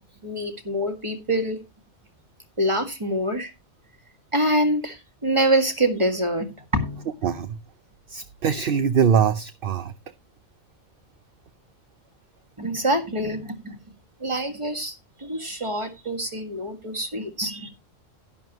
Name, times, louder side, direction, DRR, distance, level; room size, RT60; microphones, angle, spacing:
voice 1, 0.2-1.6 2.6-3.5 4.3-6.5 6.7-7.1 12.6-13.8 14.2-17.7, right 1 dB, 25° right, 1.8 m, -25 dB
voice 2, 7.2-7.6 8.1-9.9, right 7 dB, 55° right, 0.8 m, -22 dB
11.0 x 11.0 x 2.9 m
omnidirectional pair, 1.3 m